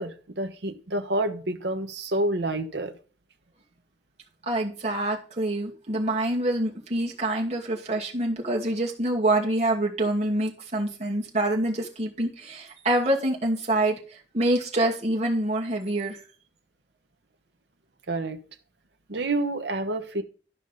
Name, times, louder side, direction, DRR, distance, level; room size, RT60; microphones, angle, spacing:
voice 1, 0.0-2.9 18.1-18.4 19.1-20.2, right 2 dB, 70° right, 6 dB, 1.1 m, -28 dB
voice 2, 4.5-14.0 14.3-16.2, right 1 dB, 40° right, -2 dB, 2.4 m, -26 dB
12.5 x 5.4 x 5.4 m, 0.38 s
head